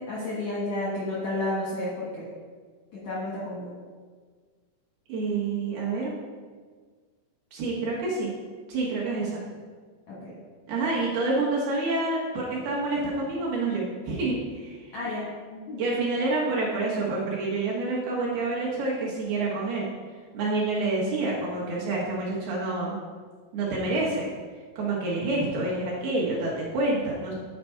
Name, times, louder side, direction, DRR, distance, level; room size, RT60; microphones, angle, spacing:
voice 1, 0.0-2.3 3.0-3.7 10.1-10.3 14.9-15.2 15.5-15.8, left 1 dB, 75° left, -6 dB, 1.6 m, -31 dB
voice 2, 5.1-6.1 7.5-8.3 8.7-9.4 10.7-15.0 15.8-19.9 20.3-23.0 23.5-24.3 24.8-27.3, right 2 dB, 65° right, -5 dB, 2.8 m, -28 dB
9.8 x 5.0 x 4.5 m, 1.6 s
omnidirectional pair, 5.5 m